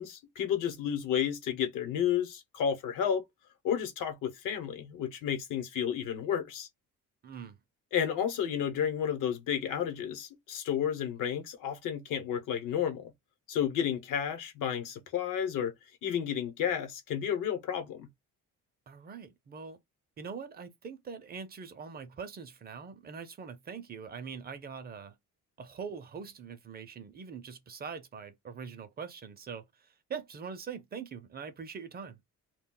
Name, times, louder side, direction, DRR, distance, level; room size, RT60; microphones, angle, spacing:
voice 1, 0.0-3.2 3.6-6.7 7.9-13.1 13.5-15.7 16.0-18.1, left 8 dB, 80° left, 0.9 m, -31 dB
voice 2, 7.2-7.6 18.9-19.8 20.2-25.2 25.6-32.2, right 6 dB, 30° right, 0.4 m, -43 dB
2.3 x 2.2 x 3.6 m
cardioid pair, 150°, 31 cm